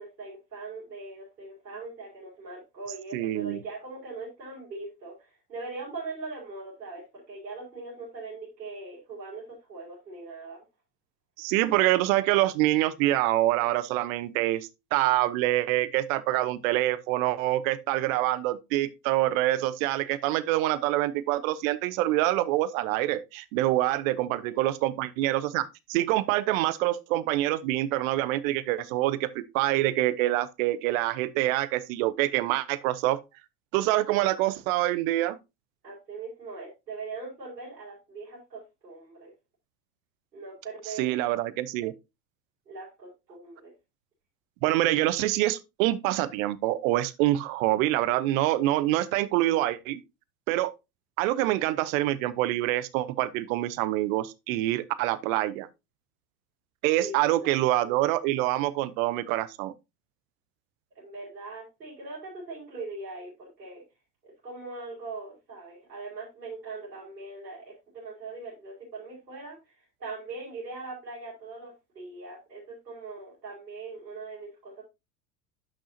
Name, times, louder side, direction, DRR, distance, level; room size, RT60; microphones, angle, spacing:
voice 1, 0.0-9.4 9.7-10.6 24.4-24.6 35.8-39.3 40.3-41.2 42.7-43.7 57.0-57.6 61.0-63.8 64.2-69.7 70.0-74.8, right 3 dB, 85° right, 5.2 m, -41 dB
voice 2, 3.1-3.6 11.4-33.2 33.7-35.4 40.9-41.9 44.6-50.0 50.5-50.7 51.2-55.7 56.8-59.7, right 16 dB, 55° right, 0.9 m, -26 dB
11.0 x 6.3 x 2.8 m
hypercardioid pair, 85°, 49 cm